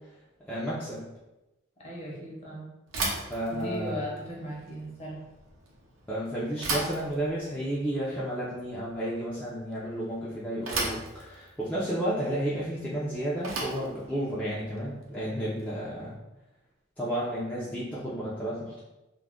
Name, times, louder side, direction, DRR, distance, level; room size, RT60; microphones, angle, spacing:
voice 1, 0.4-1.1 3.3-3.9 6.1-16.2 17.0-18.8, right 1 dB, 10° left, -9 dB, 0.4 m, -32 dB
voice 2, 1.8-2.7 3.5-5.2, equal, 35° left, -4 dB, 0.8 m, -37 dB
Bicycle / Thump thud, 2.9-16.0, right 2 dB, 80° right, 0.6 m, -38 dB
2.3 x 2.1 x 3.5 m, 0.97 s
head